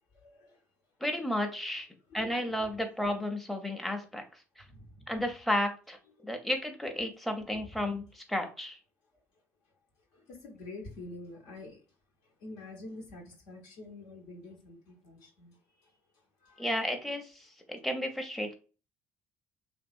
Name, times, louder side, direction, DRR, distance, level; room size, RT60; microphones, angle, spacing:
voice 1, 0.1-0.6 2.2-2.3 4.7-5.1 6.2-6.3 10.1-11.8 12.4-15.6 16.4-16.7, left 2 dB, 70° left, 0 dB, 0.9 m, -47 dB
voice 2, 1.0-1.9 2.1-4.2 4.6-4.7 5.1-6.0 6.2-8.8 16.6-18.5, left 1 dB, ahead, 4 dB, 0.7 m, -33 dB
3.0 x 2.6 x 2.4 m, 0.35 s
hypercardioid pair, 50°, 8 cm